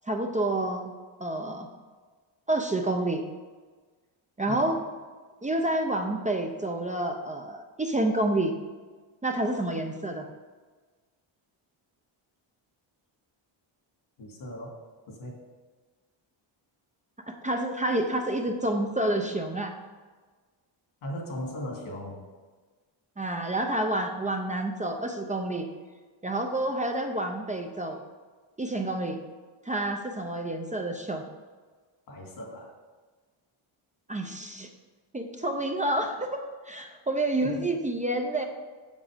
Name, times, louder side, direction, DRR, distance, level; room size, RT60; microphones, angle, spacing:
voice 1, 0.0-0.9 1.2-1.7 2.5-3.2 4.4-4.8 5.4-8.5 9.2-10.3 17.3-19.7 23.2-25.7 26.2-28.0 28.6-29.2 29.6-31.2 34.1-34.7 35.1-36.4 36.7-38.5, right 1 dB, 15° right, 3 dB, 0.6 m, -28 dB
voice 2, 14.2-14.8 15.1-15.4 21.0-22.2 32.1-32.7 37.4-37.7, equal, 80° left, 0 dB, 2.7 m, -38 dB
7.4 x 7.4 x 5.1 m, 1.4 s
cardioid pair, 135°, 49 cm